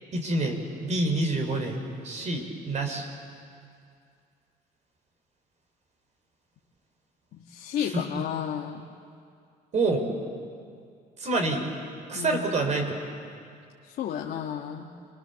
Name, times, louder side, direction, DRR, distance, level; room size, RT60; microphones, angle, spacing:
voice 1, 0.1-1.8 2.0-3.1 7.8-8.0 9.7-10.1 11.2-11.6 12.1-13.0, right 2 dB, 45° right, 3 dB, 4.6 m, -27 dB
voice 2, 7.3-8.8 12.1-12.4 13.8-14.9, left 9 dB, 65° left, 0 dB, 1.7 m, -32 dB
30.0 x 22.5 x 7.0 m, 2.3 s
cardioid pair, 110°, 17 cm